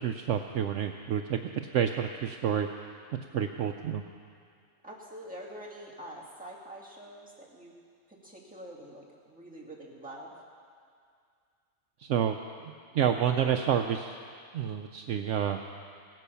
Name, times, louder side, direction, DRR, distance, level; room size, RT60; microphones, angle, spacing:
voice 1, 0.0-1.4 1.7-2.7 3.1-4.0 12.0-12.4 12.9-14.1 14.5-15.6, right 9 dB, 65° right, 5 dB, 0.9 m, -28 dB
voice 2, 4.8-7.7 8.1-10.3, right 1 dB, 5° right, -5 dB, 2.5 m, -45 dB
17.5 x 10.5 x 6.9 m, 2.2 s
omnidirectional pair, 1.4 m